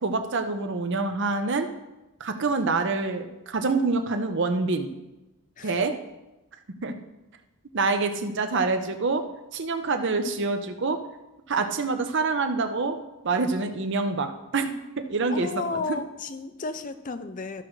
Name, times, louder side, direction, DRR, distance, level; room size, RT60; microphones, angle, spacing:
voice 1, 0.0-1.7 2.2-4.9 5.6-5.9 6.8-6.9 7.7-9.2 9.5-11.0 11.5-13.0 13.2-15.5, right 3 dB, 55° right, 7 dB, 0.7 m, -26 dB
voice 2, 15.3-17.6, left 4 dB, 35° left, 10 dB, 0.5 m, -33 dB
13.5 x 6.2 x 3.2 m, 1.0 s
head